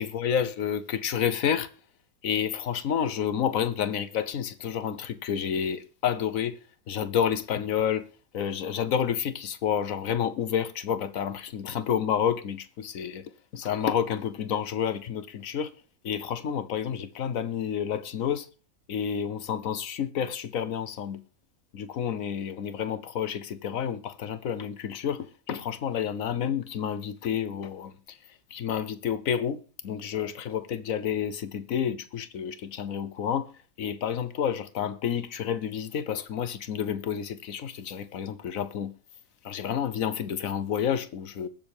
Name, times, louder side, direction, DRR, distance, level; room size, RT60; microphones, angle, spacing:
voice 1, 0.0-1.7 2.2-6.6 6.9-8.1 8.3-13.3 13.5-15.7 16.0-18.5 18.9-21.2 21.7-27.9 28.5-29.6 29.8-33.5 33.8-38.9 39.4-41.5, left 8 dB, 70° left, 1.3 m, -29 dB
21.5 x 7.4 x 3.5 m
omnidirectional pair, 1.5 m